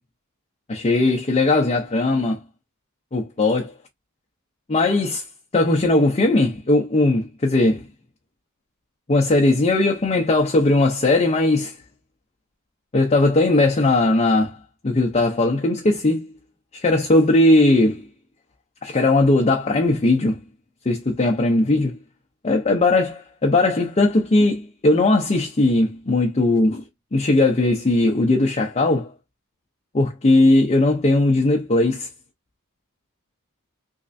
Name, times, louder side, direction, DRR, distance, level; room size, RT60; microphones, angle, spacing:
voice 1, 0.7-2.4 3.1-3.7 4.7-5.2 5.5-7.9 9.1-11.7 12.9-14.6 14.8-16.3 16.7-18.0 18.8-20.4 20.9-22.0 22.4-26.8 27.1-29.1 29.9-32.1, left 2 dB, 30° left, 0.5 m, -18 dB
3.5 x 3.1 x 2.6 m
head